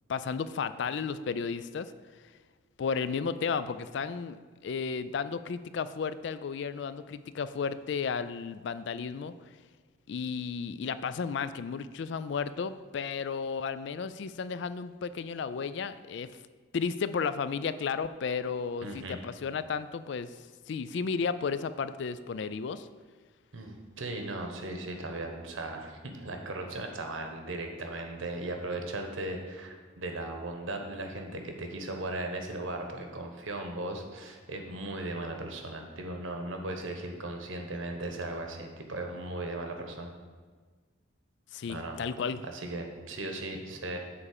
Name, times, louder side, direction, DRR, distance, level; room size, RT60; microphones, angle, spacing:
voice 1, 0.1-1.9 2.8-4.4 4.6-9.3 10.1-16.3 16.7-20.4 20.7-22.9 41.5-42.4, left 5 dB, 60° left, 14 dB, 0.3 m, -33 dB
voice 2, 18.8-19.2 23.5-40.1 41.6-42.0 42.5-44.0, right 2 dB, 80° right, 4 dB, 1.1 m, -37 dB
7.2 x 4.3 x 6.6 m, 1.5 s
head